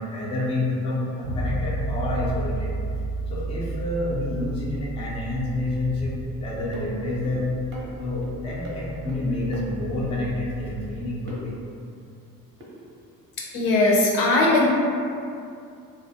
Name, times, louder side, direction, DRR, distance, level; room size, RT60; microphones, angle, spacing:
voice 1, 0.0-2.7 3.3-7.5 8.0-11.5, left 2 dB, 15° left, -5 dB, 0.4 m, -28 dB
Bass guitar, 1.2-11.1, right 3 dB, 80° right, 0.6 m, -33 dB
sound 1, 6.7-6.9 7.2-7.3 7.7-8.3 8.6-8.8 9.1-9.2 9.5-9.6 10.0-10.1 11.3-11.4 12.6-12.7, right 2 dB, 25° right, 0.6 m, -39 dB
voice 2, 13.5-14.7, left 2 dB, 70° left, -4 dB, 0.7 m, -19 dB
2.4 x 2.1 x 2.7 m, 2.5 s
figure-of-eight pair, 50°, 49 cm